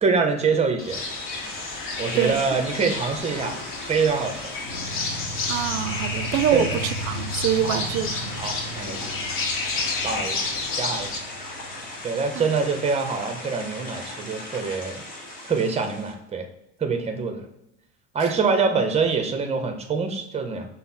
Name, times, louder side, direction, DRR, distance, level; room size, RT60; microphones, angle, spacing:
voice 1, 0.0-1.0 2.0-3.6 3.9-4.5 6.5-6.7 7.6-7.8 8.4-9.1 10.0-10.4 10.8-11.1 12.0-15.0 15.5-16.5 16.8-17.4 18.1-20.7, right 5 dB, 20° right, 5 dB, 0.8 m, -25 dB
sound 1, 0.8-11.2, left 3 dB, 45° left, 1.0 m, -31 dB
sound 2, 0.9-16.1, left 1 dB, 25° left, 1.5 m, -38 dB
sound 3, 4.6-13.2, right 1 dB, 70° left, 0.8 m, -37 dB
voice 2, 5.5-8.4 12.3-12.5 18.2-18.3, right 9 dB, 55° right, 10 dB, 0.5 m, -25 dB
5.5 x 2.1 x 4.2 m, 0.88 s
hypercardioid pair, 95°, 31 cm